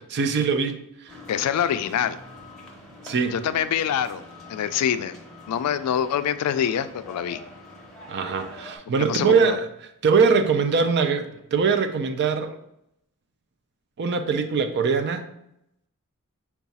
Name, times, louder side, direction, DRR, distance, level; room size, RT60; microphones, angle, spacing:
voice 1, 0.1-1.1 3.0-3.4 8.1-9.7 10.0-12.6 14.0-15.3, right 5 dB, 50° right, 8 dB, 0.4 m, -22 dB
sound 1, 1.1-8.8, left 1 dB, 5° left, 0.7 m, -44 dB
voice 2, 1.3-2.2 3.3-4.2 4.5-5.1 5.5-7.4 9.0-9.5, left 9 dB, 80° left, 14 dB, 0.3 m, -25 dB
4.7 x 2.3 x 4.0 m, 0.79 s
head